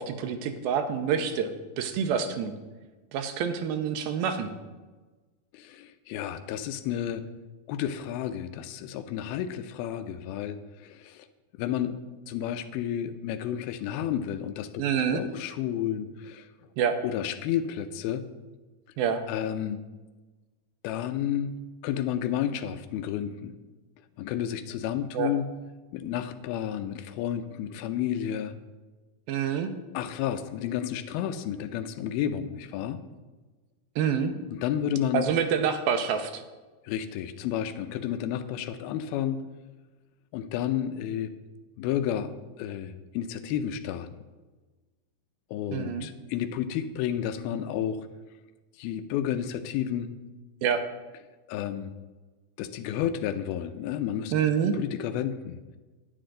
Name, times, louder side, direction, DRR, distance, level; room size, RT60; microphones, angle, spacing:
voice 1, 0.0-1.5 1.8-2.5 3.1-4.5 14.8-15.2 16.8-17.0 19.0-19.2 25.1-25.3 29.3-29.7 34.0-34.3 35.1-36.4 45.7-46.1 50.6-50.8 54.3-54.8, right 7 dB, 85° right, 7 dB, 2.5 m, -27 dB
voice 2, 5.5-7.3 7.7-11.3 11.6-12.0 12.3-14.7 15.1-16.5 17.0-18.2 19.3-19.8 20.8-21.5 21.8-23.5 24.2-25.5 25.9-28.5 29.9-33.0 34.5-35.3 36.9-39.4 40.3-41.3 41.8-42.3 42.6-44.1 45.5-48.1 48.8-50.1 51.5-51.9 52.6-54.3 54.6-55.8, left 10 dB, 85° left, 10 dB, 2.5 m, -31 dB
9.9 x 9.8 x 3.8 m, 1.3 s
omnidirectional pair, 4.2 m